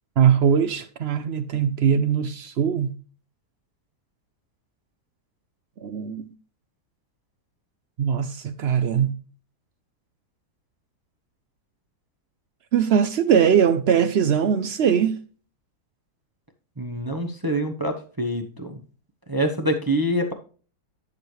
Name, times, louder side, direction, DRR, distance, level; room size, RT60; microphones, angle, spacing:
voice 1, 0.2-2.9 5.8-6.3 8.0-9.1 12.7-15.2, right 8 dB, 70° right, 0.6 m, -21 dB
voice 2, 16.8-18.8 19.3-20.3, right 1 dB, 20° right, 0.6 m, -25 dB
11.0 x 6.5 x 3.1 m
omnidirectional pair, 1.8 m